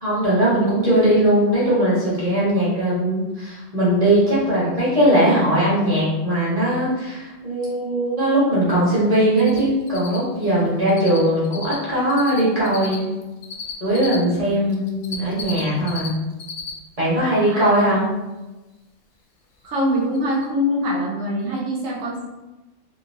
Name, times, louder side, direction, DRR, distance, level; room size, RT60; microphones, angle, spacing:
voice 1, 0.0-13.1 13.8-16.2 17.0-18.1, right 1 dB, 25° right, -9 dB, 1.7 m, -19 dB
Cricket, 9.4-9.6 9.9-14.2 14.7-16.1 16.3-16.7 17.1-17.2 19.7-19.8 20.1-20.2 20.4-20.5, left 5 dB, 55° left, 0.8 m, -33 dB
voice 2, 19.6-22.3, equal, 80° right, -2 dB, 1.2 m, -23 dB
3.9 x 2.9 x 2.8 m, 1.1 s
omnidirectional pair, 1.4 m